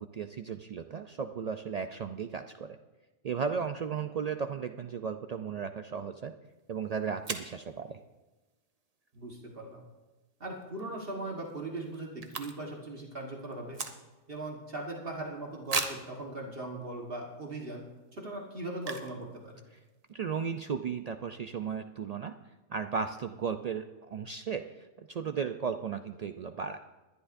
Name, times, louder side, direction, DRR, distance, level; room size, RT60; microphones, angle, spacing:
voice 1, 0.0-2.8 3.2-6.3 6.7-8.0 20.1-22.3 22.7-26.8, right 6 dB, 80° right, 7 dB, 0.3 m, -35 dB
sound 1, 6.6-6.7 7.2-7.6 10.5-10.8 11.1-11.2 11.4-12.9 13.1-14.4 14.8-14.9 15.7-16.1 16.8-16.9 17.4-17.6 18.8-19.2 19.5-19.6 19.8-20.1, right 4 dB, 35° right, 0.8 m, -37 dB
voice 2, 9.1-9.8 10.4-13.8 14.3-17.8 18.1-19.6, right 2 dB, 55° right, 0 dB, 1.6 m, -39 dB
21.0 x 11.0 x 2.6 m, 1.1 s
omnidirectional pair, 1.2 m